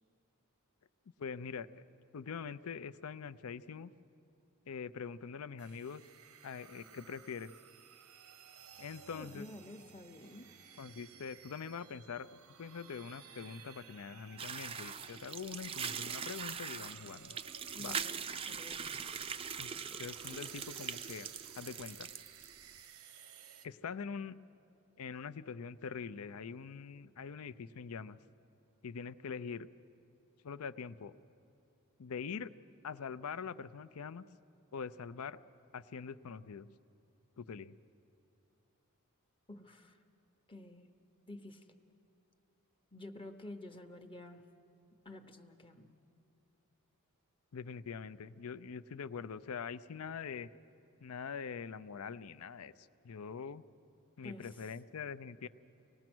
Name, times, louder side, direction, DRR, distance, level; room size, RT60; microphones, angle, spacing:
voice 1, 1.2-1.8 2.1-3.9 4.7-6.0 6.4-7.5 8.8-9.5 10.8-17.4 17.8-18.0 19.6-19.7 20.0-22.1 23.6-24.4 25.0-28.2 28.8-29.7 30.4-31.1 32.0-32.5 32.8-34.2 34.7-35.4 35.7-36.7 37.4-37.7 47.5-50.5 51.0-53.6 54.2-55.5, left 6 dB, 80° left, 15 dB, 0.5 m, -44 dB
sound 1, 5.6-23.7, right 8 dB, 90° right, 0.9 m, -56 dB
voice 2, 9.1-10.5 17.7-18.2 18.4-18.8 39.5-40.0 40.5-40.9 41.3-41.7 42.9-44.4 45.0-45.9 54.2-54.7, left 1 dB, 25° left, 6 dB, 0.8 m, -50 dB
sound 2, 14.4-22.5, right 7 dB, 25° right, 0.4 m, -42 dB
25.0 x 19.0 x 6.1 m, 2.7 s
head